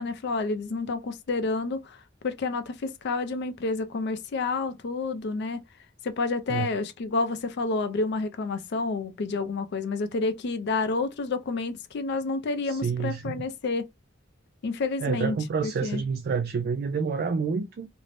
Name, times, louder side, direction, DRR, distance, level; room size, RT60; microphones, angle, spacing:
voice 1, 0.0-5.6 6.0-13.9 14.6-15.4 15.6-16.0, left 3 dB, 60° left, 0.4 m, -29 dB
voice 2, 12.6-13.4 15.0-17.9, right 5 dB, 50° right, 0.3 m, -28 dB
2.6 x 2.0 x 3.2 m
head